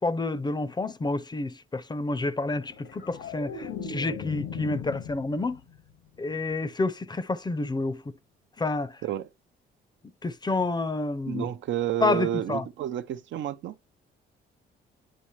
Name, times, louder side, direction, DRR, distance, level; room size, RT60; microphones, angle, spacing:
voice 1, 0.0-5.6 6.2-8.0 8.6-8.9 10.2-11.4 12.0-12.6, left 3 dB, 20° left, 0.6 m, -29 dB
sound 1, 2.6-5.8 6.1-6.5, left 7 dB, 85° left, 1.4 m, -38 dB
voice 2, 11.3-13.8, right 11 dB, 70° right, 0.6 m, -30 dB
8.5 x 4.9 x 3.1 m
cardioid pair, 90°, 20 cm